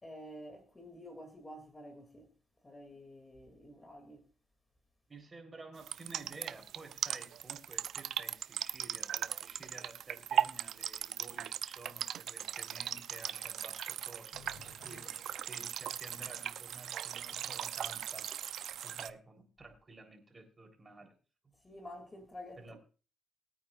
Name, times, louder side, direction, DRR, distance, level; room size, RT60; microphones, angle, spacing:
voice 1, 0.0-2.3 2.6-4.3 21.6-22.8, equal, 20° left, 2.7 m, -50 dB
voice 2, 5.1-18.2 18.6-21.2 21.4-21.5 22.6-22.8, right 3 dB, 30° right, 3.8 m, -52 dB
sound 1, 5.8-19.1, right 10 dB, 70° right, 0.5 m, -38 dB
sound 2, 14.3-17.0 17.4-17.5 17.9-18.0 18.4-18.5, left 4 dB, 65° left, 4.3 m, -59 dB
21.5 x 9.0 x 2.5 m
cardioid pair, 90°, 0 cm